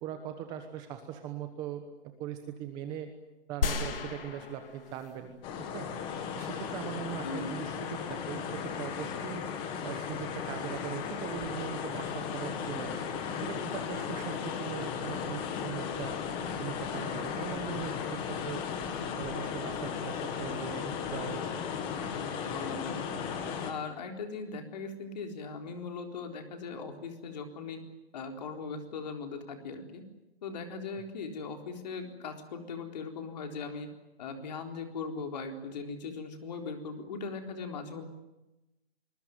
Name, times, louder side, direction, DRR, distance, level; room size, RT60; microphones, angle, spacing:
voice 1, 0.0-3.1 3.5-5.4 5.7-5.9 6.4-9.4 9.8-13.0 13.4-16.2 16.6-18.6 19.2-21.4, right 9 dB, 15° right, 7 dB, 1.1 m, -40 dB
sound 1, 3.6-5.4 5.9-6.0, left 5 dB, 60° left, 3.3 m, -34 dB
sound 2, 5.4-23.7, left 7 dB, 15° left, 2.1 m, -36 dB
voice 2, 7.1-7.5 22.0-23.3 23.6-27.8 28.1-30.0 30.4-33.9 34.2-38.1, left 4 dB, 40° left, 4 dB, 4.0 m, -39 dB
25.0 x 21.5 x 9.3 m, 1.0 s
hypercardioid pair, 165°, 32 cm